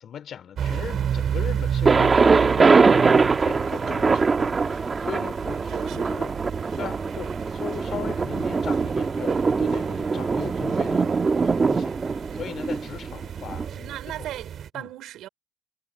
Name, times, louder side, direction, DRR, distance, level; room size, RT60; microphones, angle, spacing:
voice 1, 0.0-5.6 5.9-6.3 6.8-14.3 14.8-14.9, left 9 dB, 65° left, 3.5 m, -38 dB
sound 1, 0.6-14.7, right 9 dB, 65° right, 5.3 m, -33 dB
Thunder, 1.9-13.7, right 4 dB, 35° right, 1.5 m, -22 dB
voice 2, 5.7-6.3 13.8-15.3, right 13 dB, 85° right, 4.0 m, -38 dB
cardioid pair, 90°, 0 cm